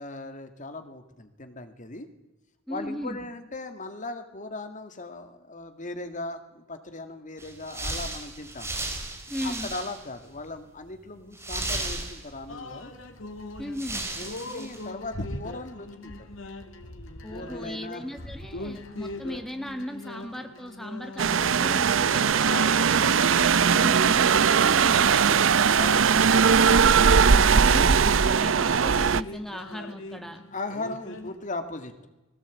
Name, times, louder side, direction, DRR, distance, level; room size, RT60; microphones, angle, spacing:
voice 1, 0.0-2.1 2.7-8.7 9.4-12.9 14.2-16.3 17.3-18.1 25.8-26.3 30.5-32.1, left 2 dB, 40° left, 8 dB, 2.2 m, -38 dB
voice 2, 2.7-3.3 9.3-9.7 13.6-14.1 17.2-23.4 23.8-25.5 26.9-28.0 28.3-30.4, equal, ahead, 6 dB, 1.8 m, -37 dB
sound 1, 7.4-10.2 10.5-10.6 11.3-12.5 13.3-13.4 13.7-14.8, right 2 dB, 15° right, 4.5 m, -34 dB
sound 2, 12.5-31.4, left 2 dB, 85° left, 2.5 m, -41 dB
sound 3, 21.2-29.2, right 6 dB, 80° right, 0.6 m, -20 dB
21.0 x 17.5 x 8.5 m, 1.0 s
head